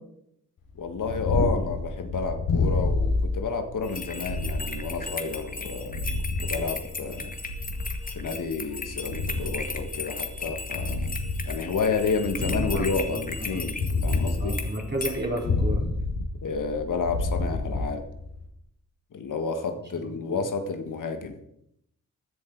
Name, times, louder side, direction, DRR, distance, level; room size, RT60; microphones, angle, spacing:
Purr, 0.8-18.5, left 3 dB, 80° left, 4.0 m, -29 dB
voice 1, 0.8-6.0 6.4-7.3 8.1-11.1 11.4-14.6 16.4-18.0 19.1-21.4, left 4 dB, 60° left, 7 dB, 1.6 m, -30 dB
sound 1, 3.8-15.4, left 3 dB, 25° left, 2.1 m, -37 dB
voice 2, 12.4-13.6 14.4-15.9, right 1 dB, 30° right, -1 dB, 4.3 m, -32 dB
15.5 x 10.5 x 4.7 m, 0.76 s
cardioid pair, 70°, 34 cm